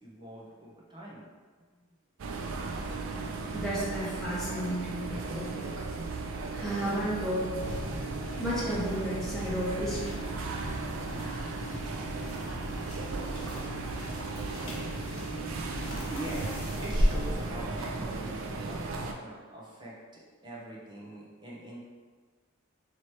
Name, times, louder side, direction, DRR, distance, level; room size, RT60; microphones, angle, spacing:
voice 1, 0.0-1.3 1.5-1.9 16.1-21.8, right 2 dB, 20° right, -5 dB, 0.8 m, -44 dB
sound 1, 2.2-19.1, right 3 dB, 85° right, 0.4 m, -36 dB
voice 2, 3.5-5.7 6.5-7.5 8.4-10.2, right 1 dB, ahead, -10 dB, 1.2 m, -32 dB
sound 2, 7.6-18.0, equal, 75° left, 1.0 m, -36 dB
3.1 x 3.1 x 4.2 m, 1.5 s
head